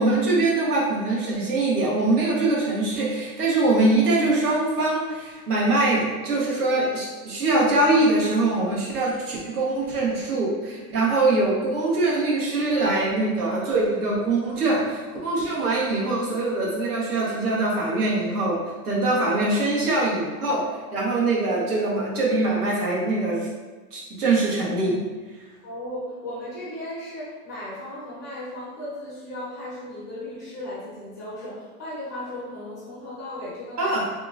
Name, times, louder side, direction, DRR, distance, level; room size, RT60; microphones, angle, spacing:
voice 1, 0.0-20.6 20.9-23.5 23.9-25.0 33.8-34.0, right 2 dB, 85° right, -5 dB, 1.5 m, -23 dB
voice 2, 25.6-34.0, left 1 dB, 15° left, -11 dB, 0.4 m, -36 dB
3.7 x 2.9 x 2.6 m, 1.3 s
supercardioid pair, 175°, 44 cm